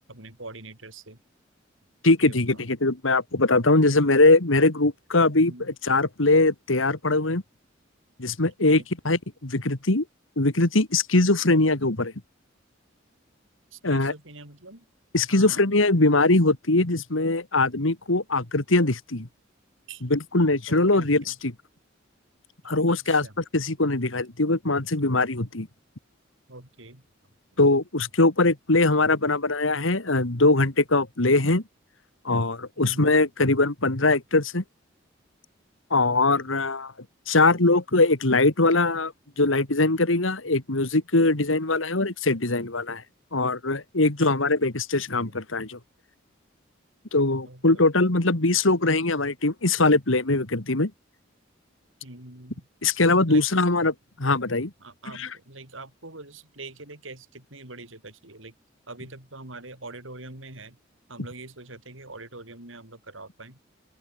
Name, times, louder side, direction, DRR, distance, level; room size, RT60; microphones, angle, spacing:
voice 1, 0.1-1.2 2.2-2.6 5.4-5.7 8.4-8.9 13.7-14.9 15.3-16.0 19.9-20.1 20.7-21.4 22.9-23.3 26.5-27.1 32.8-33.2 36.0-36.7 44.2-44.4 47.5-47.8 52.0-52.7 53.3-53.5 54.8-58.5 58.9-60.8 61.1-63.6, right 2 dB, 80° right, 6.9 m, -44 dB
voice 2, 2.0-7.4 8.2-10.0 10.4-12.1 13.8-14.1 15.1-19.3 20.1-21.5 22.6-23.3 23.5-25.7 27.6-31.6 32.2-34.6 35.9-36.9 37.3-43.0 43.3-45.8 47.1-50.9 52.8-54.7 55.1-55.3, left 2 dB, 85° left, 2.3 m, -22 dB
open air
head